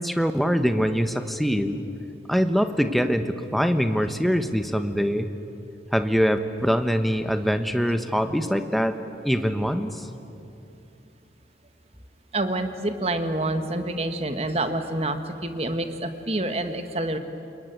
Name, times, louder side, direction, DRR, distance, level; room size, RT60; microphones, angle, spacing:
voice 1, 0.0-1.8 2.3-5.3 5.9-9.0 9.2-10.1, equal, ahead, 8 dB, 1.1 m, -23 dB
voice 2, 12.3-17.2, right 1 dB, 35° right, 8 dB, 1.6 m, -27 dB
28.5 x 22.0 x 9.3 m, 2.7 s
head